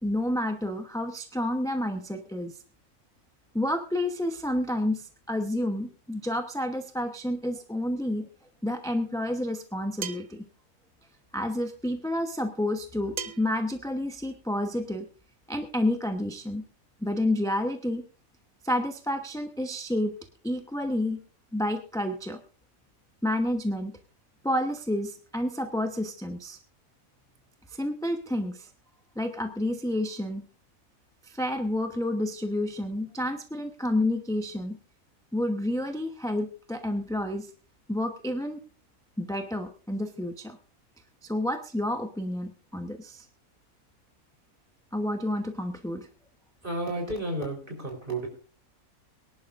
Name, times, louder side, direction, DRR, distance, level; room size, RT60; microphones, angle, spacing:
voice 1, 0.0-2.5 3.5-8.3 8.6-10.4 11.3-15.1 15.5-16.6 17.0-18.0 18.6-20.2 20.4-21.2 21.5-22.4 23.2-24.0 24.4-26.6 27.7-28.7 29.2-30.5 31.2-34.8 35.3-37.5 37.9-38.6 39.2-40.6 41.2-43.3 44.9-46.1, left 1 dB, 5° left, 5 dB, 0.8 m, -29 dB
sound 1, 10.0-10.4 13.2-13.6, right 6 dB, 50° right, 0.5 m, -36 dB
voice 2, 46.6-48.3, right 1 dB, 35° right, 2 dB, 4.3 m, -32 dB
23.0 x 11.0 x 2.5 m, 0.37 s
omnidirectional pair, 1.6 m